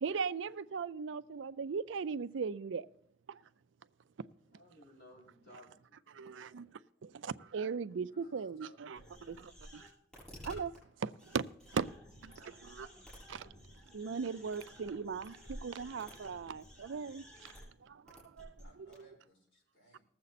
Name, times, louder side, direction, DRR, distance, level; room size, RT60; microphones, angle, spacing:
voice 1, 0.0-2.9 3.3-3.4 4.2-4.3 6.1-6.7 7.0-9.9 10.4-10.7 11.0-11.4 11.7-11.9 12.2-12.9 13.3-13.5 13.9-17.5 17.8-18.6, right 5 dB, 80° right, 0.4 m, -38 dB
voice 2, 4.4-6.9, left 1 dB, 55° left, 5.0 m, -60 dB
voice 3, 8.1-9.5 12.2-12.7 18.6-20.0, right 1 dB, 80° left, 5.2 m, -64 dB
sound 1, 8.9-10.8 11.2-17.6 18.1-18.6 18.9-19.0, equal, 5° left, 6.9 m, -53 dB
19.5 x 7.6 x 4.1 m
head